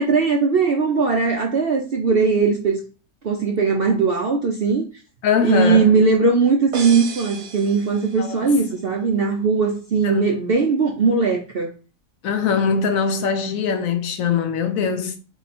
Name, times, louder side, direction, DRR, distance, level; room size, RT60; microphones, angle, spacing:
voice 1, 0.0-2.8 3.2-4.8 5.4-11.7, right 4 dB, 60° right, 0.6 m, -19 dB
voice 2, 5.2-5.9 8.2-8.6 10.0-10.3 12.2-15.2, left 6 dB, 70° left, 0.9 m, -22 dB
sound 1, 6.7-8.5, right 5 dB, 90° right, 1.6 m, -34 dB
3.9 x 3.0 x 4.1 m
omnidirectional pair, 1.7 m